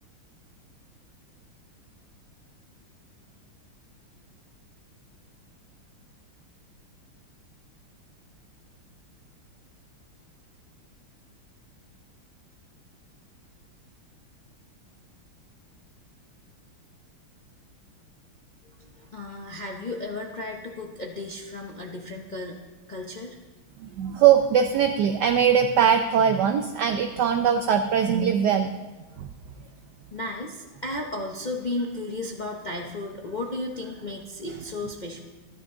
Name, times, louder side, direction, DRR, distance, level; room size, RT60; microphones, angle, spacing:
voice 1, 18.8-22.6 22.9-23.4 30.1-35.2, left 2 dB, 65° left, 0 dB, 0.4 m, -34 dB
voice 2, 23.8-28.7 29.2-29.3, right 8 dB, 70° right, 7 dB, 1.0 m, -21 dB
13.5 x 11.0 x 3.7 m, 1.2 s
omnidirectional pair, 2.3 m